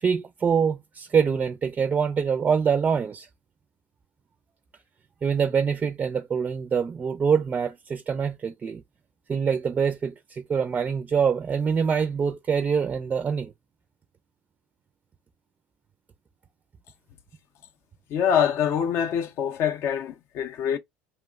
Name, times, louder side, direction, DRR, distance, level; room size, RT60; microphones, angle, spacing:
voice 1, 0.0-3.3 5.2-8.8 9.3-13.5, right 6 dB, 30° right, 0.4 m, -25 dB
voice 2, 18.1-20.8, left 8 dB, 55° left, 0.5 m, -25 dB
2.9 x 2.0 x 2.3 m
hypercardioid pair, 85°, 5 cm